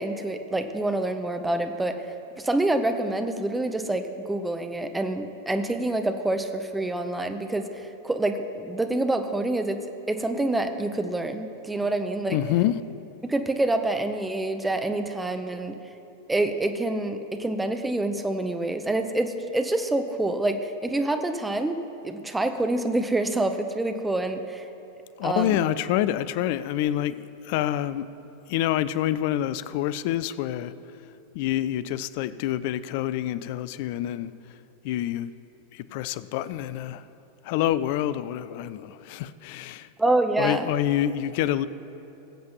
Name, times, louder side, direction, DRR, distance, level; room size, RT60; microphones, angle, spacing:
voice 1, 0.0-1.9 2.4-4.0 4.3-9.8 10.1-12.4 13.2-15.8 16.3-24.6 25.2-25.6 40.0-40.7, right 2 dB, 10° right, 0.7 m, -27 dB
voice 2, 12.3-12.8 25.2-28.1 28.5-30.7 31.3-34.3 34.8-35.3 35.7-37.0 37.4-39.9 40.4-41.7, left 12 dB, 50° left, 0.3 m, -27 dB
21.0 x 7.4 x 3.0 m
figure-of-eight pair, 90°, 0 cm